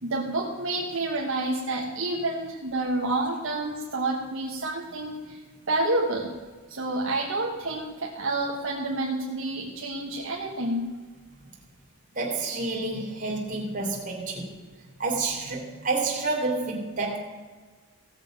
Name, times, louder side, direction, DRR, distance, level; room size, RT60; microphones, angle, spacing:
voice 1, 0.0-5.4 5.7-6.3 6.7-10.8, right 2 dB, 60° right, -3 dB, 1.3 m, -29 dB
voice 2, 12.1-14.6 15.0-17.2, right 3 dB, 35° right, -1 dB, 2.7 m, -29 dB
16.5 x 7.2 x 5.1 m, 1.4 s
head